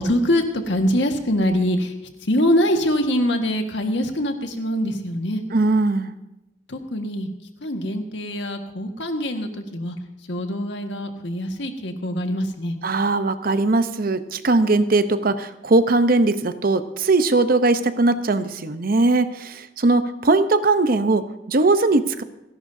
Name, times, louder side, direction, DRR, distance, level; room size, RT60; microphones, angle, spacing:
voice 1, 0.0-1.9 2.2-5.4 6.7-7.3 7.6-10.0 10.3-12.7, equal, 85° left, 4 dB, 1.6 m, -23 dB
voice 2, 5.5-6.1 12.8-22.2, right 3 dB, 55° right, 11 dB, 0.8 m, -20 dB
29.5 x 11.0 x 2.7 m, 0.94 s
head